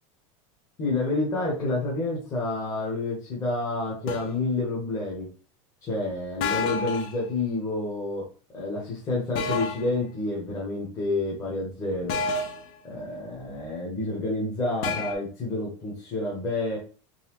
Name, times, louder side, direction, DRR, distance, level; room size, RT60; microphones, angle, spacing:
voice 1, 0.8-5.3 5.8-8.3 8.5-12.2 12.8-16.8, left 2 dB, 20° left, -5 dB, 1.0 m, -29 dB
sound 1, 4.1-4.3 6.4-7.2 9.3-9.9 12.1-12.7 14.8-15.1, left 4 dB, 45° left, 0.6 m, -29 dB
4.0 x 3.2 x 3.0 m, 0.37 s
supercardioid pair, 175°, 17 cm